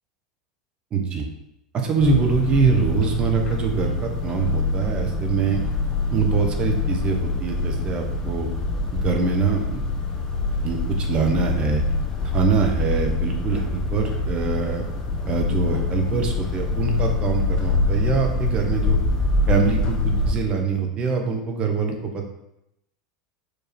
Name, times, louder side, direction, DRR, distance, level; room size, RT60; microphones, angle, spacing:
voice 1, 0.9-1.3 1.7-5.6 6.1-8.5 8.9-9.8 10.6-11.8 12.3-14.9 15.3-19.0 19.5-22.3, right 5 dB, 30° right, 2 dB, 1.1 m, -23 dB
sound 1, 2.0-20.3, left 3 dB, 25° left, 1.0 m, -25 dB
4.9 x 4.6 x 4.6 m, 0.84 s
figure-of-eight pair, 80°, 3 cm